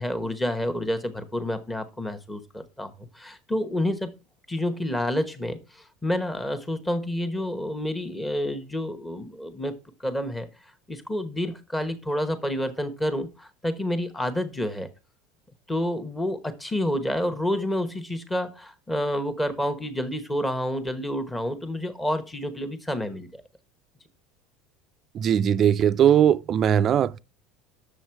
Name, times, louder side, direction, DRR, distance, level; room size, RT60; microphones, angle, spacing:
voice 1, 0.0-4.1 4.5-10.5 10.9-14.9 15.7-23.4, left 1 dB, 10° left, 1.0 m, -29 dB
voice 2, 25.1-27.2, right 9 dB, 30° right, 0.4 m, -20 dB
9.1 x 6.8 x 4.5 m
cardioid pair, 160°, 0 cm